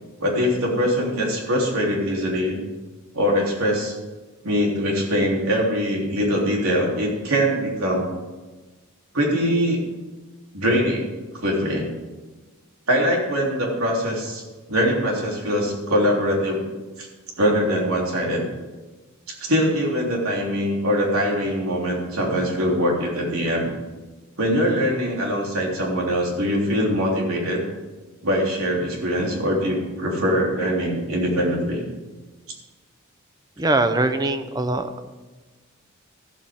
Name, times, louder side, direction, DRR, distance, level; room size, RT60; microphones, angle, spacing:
voice 1, 0.2-2.6 3.1-3.9 4.4-8.1 9.1-9.8 10.5-11.1 11.4-11.9 12.9-14.4 14.7-16.6 17.0-17.1 17.4-18.5 19.3-23.7 24.4-27.6 28.2-31.8, equal, 80° right, -2 dB, 3.5 m, -22 dB
voice 2, 33.6-34.8, right 2 dB, 20° right, 9 dB, 0.8 m, -21 dB
14.0 x 13.0 x 3.7 m, 1.2 s
head